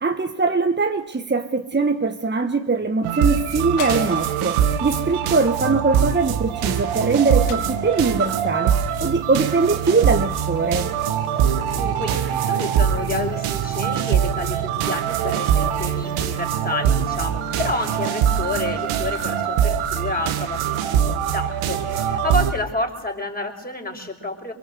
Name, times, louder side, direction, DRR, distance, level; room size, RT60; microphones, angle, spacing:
voice 1, 0.0-10.9, right 4 dB, 20° right, 6 dB, 1.5 m, -22 dB
sound 1, 3.0-22.5, right 9 dB, 85° right, 1.9 m, -23 dB
sound 2, 3.8-4.5 5.0-5.2 5.5-6.5 7.5-8.2, left 13 dB, 90° left, 1.4 m, -39 dB
voice 2, 11.3-24.5, left 2 dB, 20° left, 2 dB, 5.6 m, -30 dB
23.5 x 23.5 x 8.1 m, 0.83 s
supercardioid pair, 65°, 49 cm